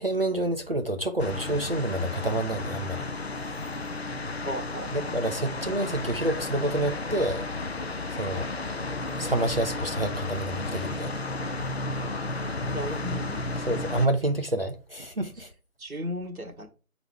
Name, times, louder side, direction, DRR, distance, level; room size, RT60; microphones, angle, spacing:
voice 1, 0.0-3.0 4.9-7.5 8.1-8.5 9.2-11.1 13.6-15.5, right 1 dB, 45° right, 0.6 m, -28 dB
sound 1, 1.2-14.1, left 2 dB, 50° left, 0.5 m, -33 dB
voice 2, 4.4-5.1 12.7-13.5 15.8-16.7, equal, 75° right, 1.7 m, -35 dB
6.7 x 4.0 x 4.6 m
figure-of-eight pair, 155°, 43 cm